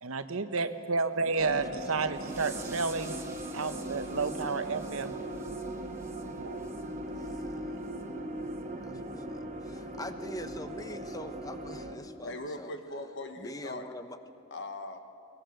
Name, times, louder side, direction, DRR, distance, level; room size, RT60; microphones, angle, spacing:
voice 1, 0.0-3.2 3.5-5.1 6.4-6.6 8.9-9.0, right 4 dB, 80° right, 10 dB, 1.0 m, -31 dB
voice 2, 1.4-2.1 7.1-7.8 8.8-12.8 13.4-14.2, left 1 dB, 15° left, 9 dB, 0.9 m, -44 dB
sound 1, 1.4-12.0, right 1 dB, 35° right, 1.6 m, -39 dB
sound 2, 2.1-6.8 7.2-7.4 7.9-8.0 8.5-8.6 9.1-9.2, right 4 dB, 15° right, 2.0 m, -49 dB
voice 3, 12.2-13.9 14.5-15.0, left 2 dB, 60° left, 6 dB, 1.6 m, -40 dB
22.5 x 20.0 x 6.7 m, 2.7 s
head